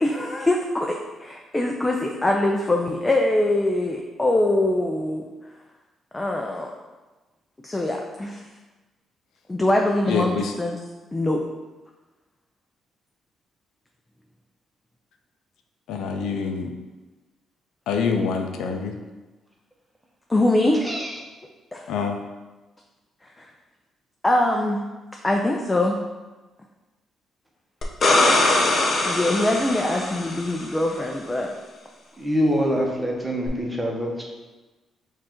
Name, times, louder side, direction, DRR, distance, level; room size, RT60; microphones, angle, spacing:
voice 1, 0.0-5.2 6.1-6.7 7.6-8.4 9.5-10.8 11.1-11.5 20.3-20.8 21.7-21.9 23.4-23.5 24.2-24.8 25.2-26.0 29.0-31.5, left 1 dB, 20° left, 1 dB, 0.4 m, -23 dB
voice 2, 10.1-10.5 15.9-16.7 17.9-18.9 21.9-22.2, left 5 dB, 80° left, 4 dB, 0.4 m, -25 dB
sound 1, 27.8-30.6 33.5-33.6, left 2 dB, 50° left, 0.7 m, -21 dB
voice 3, 32.2-34.2, equal, 10° right, -1 dB, 0.9 m, -24 dB
4.5 x 2.5 x 4.4 m, 1.2 s
cardioid pair, 90°, 0 cm